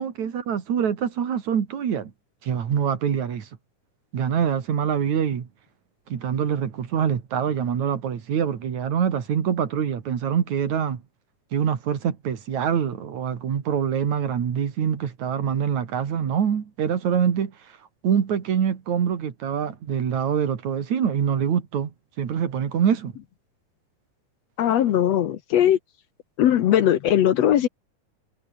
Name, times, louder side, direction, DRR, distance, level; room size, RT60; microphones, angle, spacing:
voice 1, 0.0-2.1 2.4-3.5 4.1-5.5 6.1-11.0 11.5-17.5 18.0-21.9 22.2-23.1, right 8 dB, 65° right, 3.6 m, -25 dB
voice 2, 24.6-25.8 26.4-27.7, left 11 dB, 65° left, 2.1 m, -19 dB
omnidirectional pair, 3.5 m